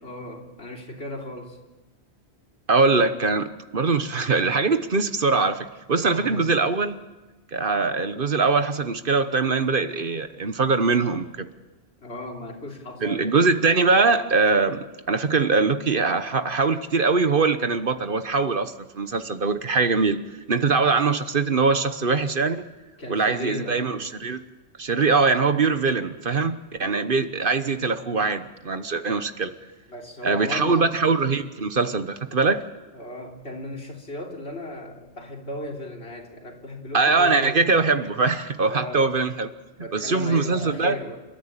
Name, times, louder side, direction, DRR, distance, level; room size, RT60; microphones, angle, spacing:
voice 1, 0.0-1.6 6.0-6.6 12.0-13.4 23.0-23.9 26.8-27.3 29.3-29.4 29.9-30.9 32.9-37.7 38.7-39.3 39.8-41.2, left 1 dB, 70° left, 0 dB, 3.7 m, -36 dB
voice 2, 2.7-7.0 7.5-11.5 13.0-20.2 20.5-22.6 23.1-24.4 24.8-29.5 30.2-32.6 36.9-39.5 39.9-41.0, right 4 dB, 55° right, 10 dB, 1.2 m, -22 dB
29.5 x 14.0 x 8.9 m, 1.2 s
omnidirectional pair, 1.1 m